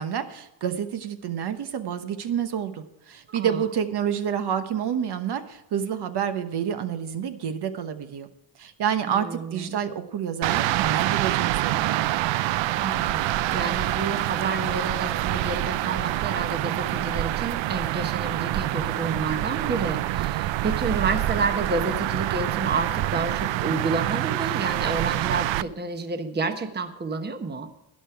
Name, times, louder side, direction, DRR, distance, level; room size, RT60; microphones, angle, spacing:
voice 1, 0.0-8.3 8.5-12.1, right 8 dB, 55° right, 8 dB, 1.1 m, -28 dB
voice 2, 3.3-3.6 9.1-9.9 12.8-13.2 13.5-27.7, right 3 dB, 20° right, 7 dB, 1.1 m, -30 dB
sound 1, 10.4-25.6, right 15 dB, 75° right, 0.6 m, -26 dB
12.0 x 10.5 x 4.6 m, 0.87 s
cardioid pair, 135°, 46 cm